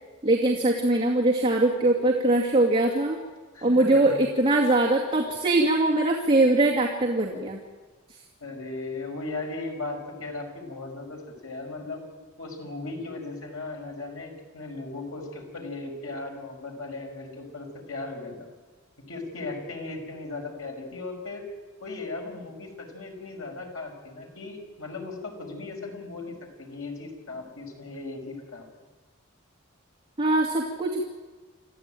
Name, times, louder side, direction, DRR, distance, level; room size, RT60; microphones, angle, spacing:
voice 1, 0.2-3.2 3.6-7.6 30.2-31.0, right 2 dB, 25° right, -2 dB, 2.3 m, -22 dB
voice 2, 3.5-4.2 8.4-12.0 12.4-18.5 19.1-21.4 21.8-28.7, left 3 dB, 90° left, 2 dB, 5.4 m, -37 dB
27.5 x 14.5 x 9.1 m, 1.3 s
head